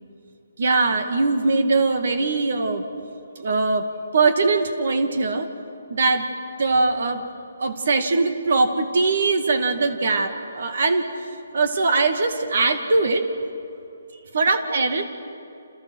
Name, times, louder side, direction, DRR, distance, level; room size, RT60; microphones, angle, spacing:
voice 1, 0.6-2.8 3.4-3.9 4.1-5.5 5.9-6.3 6.6-7.2 7.6-11.1 11.5-13.3 14.3-15.0, right 3 dB, 55° right, 8 dB, 2.3 m, -21 dB
29.0 x 28.5 x 6.5 m, 2.7 s
hypercardioid pair, 170°, 0 cm